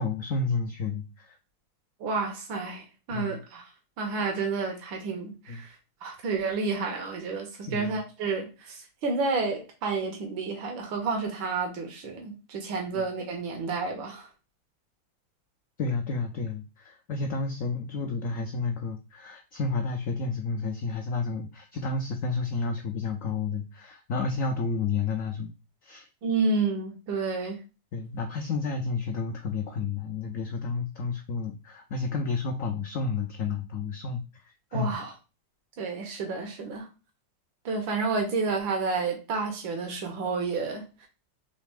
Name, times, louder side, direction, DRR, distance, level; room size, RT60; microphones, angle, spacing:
voice 1, 0.0-1.4 3.1-3.4 5.5-5.6 7.7-8.0 12.9-13.0 15.8-25.5 25.8-26.1 27.9-34.4 34.7-35.0, left 4 dB, 80° left, 0.7 m, -31 dB
voice 2, 2.0-3.7 4.0-5.8 6.0-14.3 26.2-27.6 34.7-35.1 35.8-36.9 37.7-41.1, right 4 dB, 90° right, 1.7 m, -30 dB
4.1 x 3.2 x 3.4 m
omnidirectional pair, 2.0 m